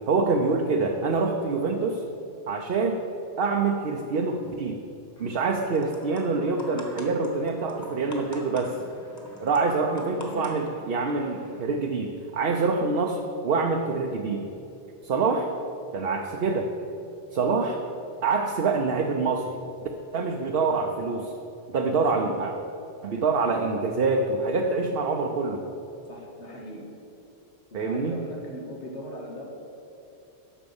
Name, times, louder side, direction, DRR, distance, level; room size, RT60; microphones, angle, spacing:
voice 1, 0.1-2.0 2.5-3.0 3.4-4.8 5.2-8.8 9.4-14.5 15.0-15.5 15.9-16.7 17.3-17.8 18.2-19.6 20.1-21.3 21.7-22.5 23.0-25.7 27.7-28.2, right 4 dB, 60° right, 2 dB, 0.9 m, -26 dB
sound 1, 5.2-11.6, left 1 dB, 15° left, 1.4 m, -45 dB
voice 2, 10.1-10.5 22.0-22.3 26.1-26.9 27.7-29.4, equal, 90° left, -2 dB, 2.0 m, -39 dB
10.0 x 6.4 x 7.0 m, 2.7 s
omnidirectional pair, 1.1 m